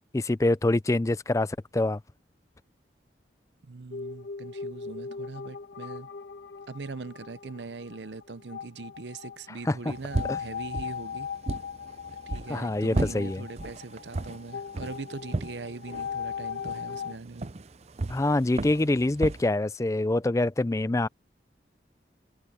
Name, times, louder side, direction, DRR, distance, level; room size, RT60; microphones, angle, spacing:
voice 1, 0.1-2.0 9.7-9.8 10.3-10.4 12.5-13.4 18.1-21.1, left 2 dB, 15° left, 0.4 m, -25 dB
voice 2, 3.6-6.1 6.7-11.3 12.3-17.5, right 4 dB, 80° right, 0.7 m, -41 dB
sound 1, 3.9-17.2, left 6 dB, 75° left, 1.3 m, -39 dB
sound 2, 9.9-19.4, right 2 dB, 35° right, 0.6 m, -36 dB
head